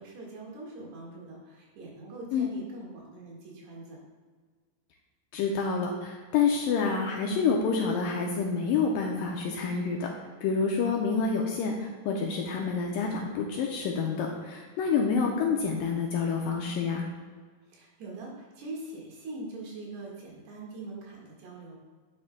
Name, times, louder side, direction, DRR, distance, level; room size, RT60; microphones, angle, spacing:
voice 1, 0.0-4.0 17.7-21.8, right 2 dB, 85° right, -3 dB, 3.8 m, -42 dB
voice 2, 5.3-10.1 10.4-17.1, left 5 dB, 85° left, 0 dB, 2.0 m, -28 dB
9.4 x 8.6 x 2.2 m, 1.5 s
omnidirectional pair, 4.5 m